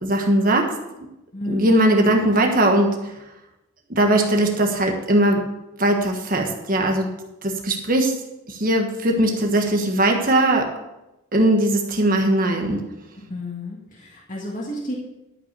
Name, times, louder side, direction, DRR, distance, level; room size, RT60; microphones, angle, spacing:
voice 1, 0.0-0.7 1.5-2.9 3.9-5.4 5.8-7.1 7.4-8.1 8.5-10.7 11.3-12.8, right 1 dB, 40° right, 2 dB, 1.5 m, -19 dB
voice 2, 1.3-1.8 13.3-14.9, left 1 dB, 35° left, -3 dB, 1.8 m, -31 dB
12.0 x 5.9 x 6.8 m, 0.92 s
head